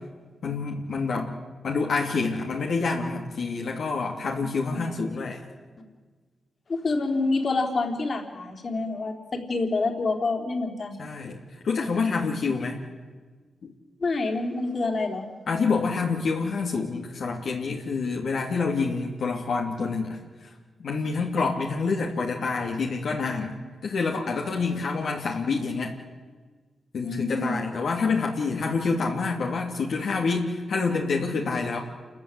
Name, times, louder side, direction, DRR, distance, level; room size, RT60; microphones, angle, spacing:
voice 1, 0.4-1.4 1.6-5.4 11.0-11.4 11.6-12.8 13.6-13.7 15.5-20.5 20.8-23.5 23.8-25.9 26.9-31.8, left 4 dB, 75° left, 0 dB, 2.8 m, -27 dB
voice 2, 4.4-4.9 6.7-11.0 12.2-12.3 14.0-15.3 27.0-27.6, left 3 dB, 50° left, 4 dB, 3.7 m, -27 dB
28.5 x 14.5 x 9.9 m, 1.4 s
cardioid pair, 75°, 0 cm